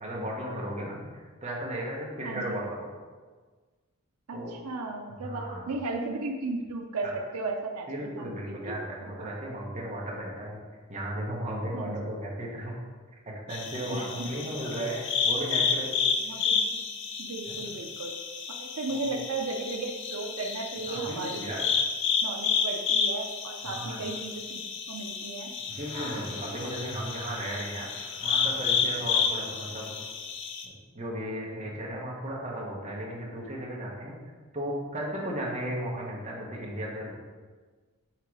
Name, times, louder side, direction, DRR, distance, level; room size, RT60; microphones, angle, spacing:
voice 1, 0.0-2.9 4.3-4.6 5.2-5.7 7.0-7.1 7.9-10.6 10.9-12.7 13.3-15.9 17.5-17.7 18.9-19.0 20.9-21.6 23.6-24.0 25.8-27.9 28.2-29.9 30.6-34.1 34.5-37.1, right 1 dB, 30° right, -3 dB, 1.2 m, -35 dB
voice 2, 2.2-2.6 4.3-9.3 11.7-12.1 13.9-14.5 16.2-16.8 17.2-18.1 18.5-21.5 22.2-24.6 24.9-25.5, right 3 dB, 85° right, 2 dB, 0.6 m, -35 dB
sound 1, 13.5-30.6, left 6 dB, 55° left, 0.6 m, -31 dB
sound 2, 25.7-29.5 30.2-30.3, left 1 dB, 20° left, 1.8 m, -46 dB
5.9 x 3.7 x 4.7 m, 1.4 s
head